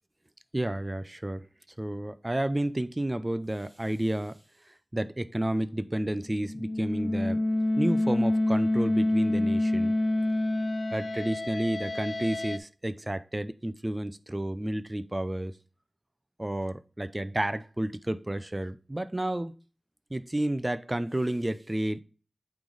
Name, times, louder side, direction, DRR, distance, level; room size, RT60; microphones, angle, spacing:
voice 1, 0.5-1.5 1.8-4.4 4.9-7.4 7.8-9.9 10.9-15.5 16.4-19.5 20.1-22.0, right 1 dB, 25° right, 0.4 m, -31 dB
sound 1, 6.3-12.6, left 1 dB, 65° left, 0.4 m, -27 dB
8.5 x 3.2 x 3.9 m
wide cardioid pair, 55°, 0 cm